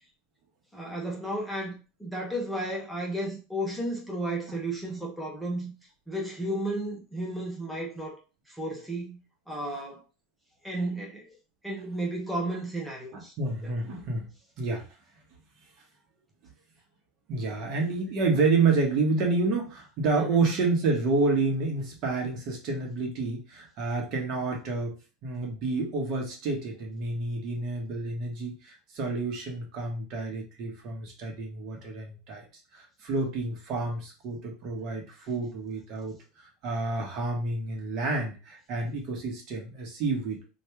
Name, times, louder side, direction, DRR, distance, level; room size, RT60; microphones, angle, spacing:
voice 1, 0.7-1.7 2.0-5.7 6.1-8.2 8.5-9.2 9.5-10.0 10.6-11.4 11.6-13.3 20.2-20.5, right 1 dB, ahead, 0.9 m, -33 dB
voice 2, 13.1-14.3 14.6-14.9 17.3-25.0 25.2-32.4 32.7-40.5, right 3 dB, 50° right, 1.2 m, -29 dB
2.9 x 2.6 x 3.4 m
supercardioid pair, 130°, 0 cm